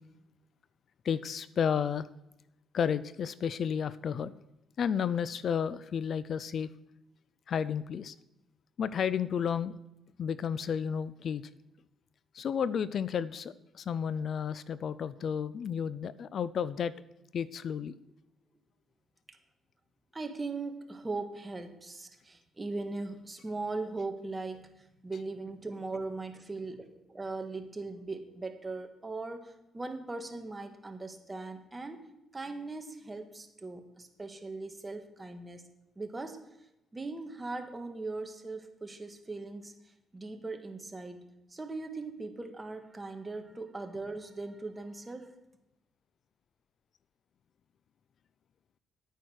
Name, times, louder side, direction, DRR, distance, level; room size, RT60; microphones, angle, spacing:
voice 1, 1.0-2.1 2.7-4.3 4.8-6.7 7.5-8.2 8.8-9.8 10.2-11.4 12.3-16.9 17.3-17.9, left 7 dB, 60° left, 17 dB, 0.4 m, -32 dB
voice 2, 20.1-32.0 32.3-35.6 35.9-36.4 36.9-45.3, right 3 dB, 20° right, 7 dB, 1.6 m, -39 dB
10.5 x 9.2 x 6.3 m, 0.91 s
cardioid pair, 90°, 0 cm